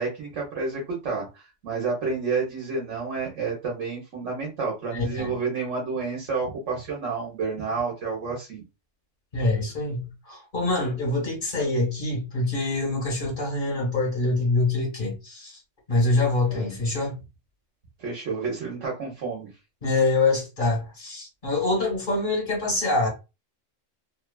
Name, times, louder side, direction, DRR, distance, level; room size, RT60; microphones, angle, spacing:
voice 1, 0.0-8.6 16.5-16.7 18.0-19.5, right 4 dB, 70° right, 1.2 m, -30 dB
voice 2, 4.9-5.3 9.3-15.6 15.9-17.2 19.8-23.1, left 2 dB, 40° left, 1.6 m, -25 dB
2.9 x 2.3 x 2.2 m
omnidirectional pair, 1.3 m